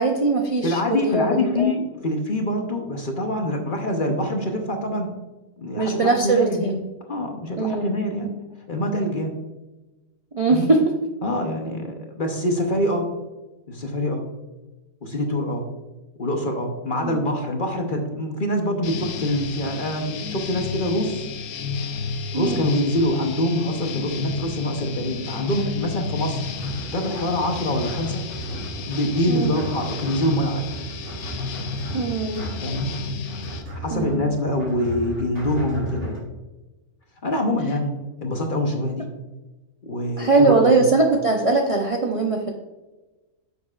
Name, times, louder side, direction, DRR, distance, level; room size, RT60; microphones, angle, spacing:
voice 1, 0.0-1.7 5.7-6.8 7.6-8.0 10.3-10.8 17.0-17.2 22.3-22.6 29.3-29.6 31.9-32.4 33.9-34.2 40.2-42.5, right 3 dB, 45° right, 2 dB, 0.4 m, -21 dB
voice 2, 0.6-5.1 5.6-6.7 7.1-8.3 8.7-9.3 10.5-10.7 11.2-13.1 13.7-14.2 15.0-15.6 16.2-21.2 21.8-21.9 22.3-28.2 28.8-30.7 32.6-32.9 33.8-36.3 37.2-39.1 39.8-40.9, left 1 dB, 40° left, 3 dB, 0.9 m, -25 dB
sound 1, 18.8-33.6, left 5 dB, 80° left, 1.2 m, -32 dB
sound 2, 26.3-36.2, right 1 dB, 90° right, 3.4 m, -36 dB
9.7 x 6.7 x 2.4 m, 1.1 s
omnidirectional pair, 1.5 m